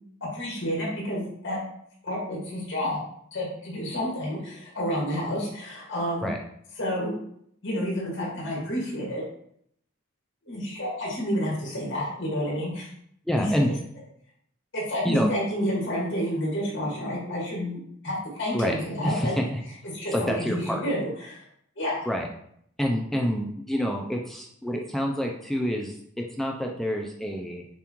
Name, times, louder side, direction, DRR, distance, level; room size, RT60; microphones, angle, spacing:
voice 1, 0.2-1.6 2.0-3.0 3.3-6.3 6.8-7.1 7.6-9.2 10.5-12.9 13.4-13.6 14.7-19.3 19.9-21.4 21.8-22.1, equal, 60° left, -4 dB, 1.9 m, -29 dB
voice 2, 13.3-13.7 15.0-15.3 18.5-18.8 19.0-19.6 20.1-20.8 22.1-22.3 22.8-27.6, equal, ahead, 0 dB, 0.3 m, -27 dB
6.9 x 2.4 x 3.0 m, 0.69 s
head